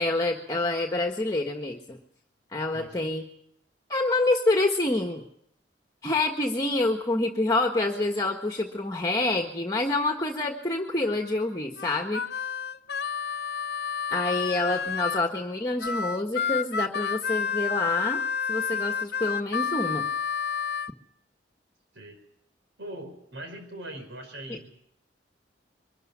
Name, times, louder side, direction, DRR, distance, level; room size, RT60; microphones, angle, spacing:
voice 1, 0.0-2.0 2.5-3.2 3.9-5.2 6.0-12.2 14.1-18.2 18.5-20.0 24.5-24.6, left 2 dB, 20° left, 2 dB, 1.5 m, -27 dB
voice 2, 2.7-3.1 12.8-12.9 21.9-22.2 22.8-24.7, right 1 dB, 90° right, 5 dB, 5.0 m, -41 dB
Harmonica, 11.8-15.3 15.8-20.9, left 6 dB, 60° left, 0.8 m, -30 dB
23.5 x 13.5 x 9.9 m, 0.71 s
head